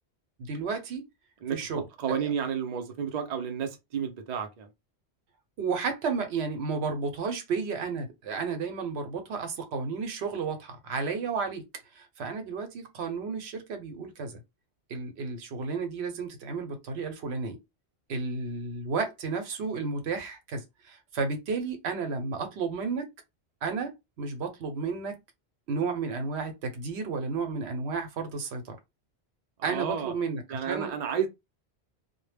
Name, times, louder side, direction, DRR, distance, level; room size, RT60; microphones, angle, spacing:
voice 1, 0.4-1.0 1.5-2.3 5.6-11.6 11.9-14.4 14.9-17.6 18.1-23.1 23.6-23.9 24.2-25.2 25.7-28.8 29.6-30.9, right 4 dB, 75° right, 0.9 m, -32 dB
voice 2, 1.4-4.7 29.6-30.1 30.5-31.3, right 7 dB, 50° right, 0.5 m, -31 dB
2.1 x 2.1 x 3.2 m
omnidirectional pair, 1.1 m